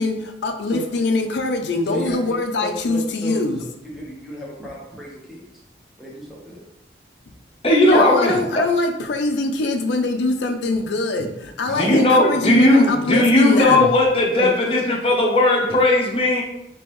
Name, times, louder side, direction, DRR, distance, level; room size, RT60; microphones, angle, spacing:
voice 1, 0.0-3.6 7.8-13.9, left 2 dB, 75° left, 5 dB, 0.5 m, -23 dB
voice 2, 1.8-3.4 3.9-5.5 6.0-6.6 11.7-12.1 14.4-14.5, equal, ahead, -5 dB, 0.8 m, -32 dB
voice 3, 7.6-8.4 11.8-16.4, left 1 dB, 30° left, -2 dB, 0.7 m, -16 dB
3.5 x 2.9 x 3.0 m, 0.82 s
head